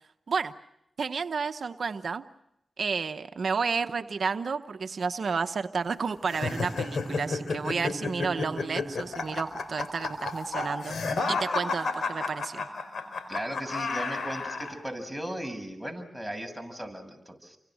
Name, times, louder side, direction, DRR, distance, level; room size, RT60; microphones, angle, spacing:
voice 1, 1.0-2.2 2.8-10.9 11.3-12.7, right 5 dB, 70° right, 9 dB, 0.9 m, -31 dB
sound 1, 6.3-14.7, left 3 dB, 75° left, 4.5 m, -31 dB
voice 2, 13.3-17.6, equal, ahead, 6 dB, 7.5 m, -37 dB
30.0 x 25.0 x 6.4 m, 0.82 s
cardioid pair, 50°, 0 cm